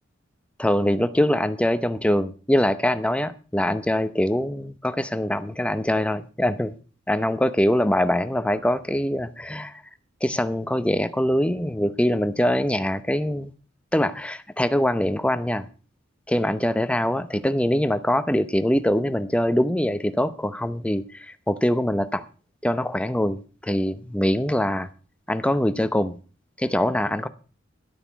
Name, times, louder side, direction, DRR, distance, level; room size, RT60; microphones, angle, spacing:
voice 1, 0.6-6.8 7.1-9.8 10.2-13.5 13.9-15.7 16.3-22.2 22.6-24.9 25.3-26.2 26.6-27.3, left 1 dB, 5° left, 0.7 m, -23 dB
12.5 x 8.7 x 5.8 m
head